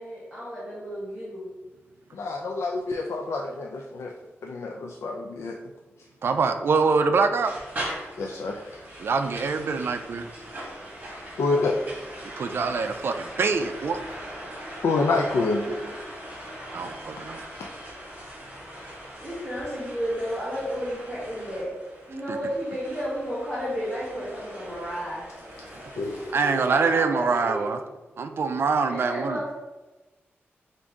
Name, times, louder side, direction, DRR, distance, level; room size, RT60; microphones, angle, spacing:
voice 1, 0.0-1.4 19.2-21.7 22.1-25.2 26.0-27.6 28.8-29.5, equal, 10° left, -10 dB, 1.2 m, -32 dB
voice 2, 2.1-4.1 4.4-5.6 8.2-8.8 11.4-11.9 14.8-15.6 17.2-17.3 26.0-26.2, left 3 dB, 90° left, 1 dB, 0.3 m, -27 dB
voice 3, 6.2-7.5 9.0-10.2 12.4-13.1 13.4-14.0 16.7-16.9 22.3-22.4 26.3-27.8 28.2-29.4, right 4 dB, 60° right, 7 dB, 0.3 m, -24 dB
sound 1, 7.4-26.6, right 1 dB, 35° right, 1.3 m, -41 dB
5.1 x 2.6 x 3.5 m, 1.1 s
wide cardioid pair, 175°, 4 cm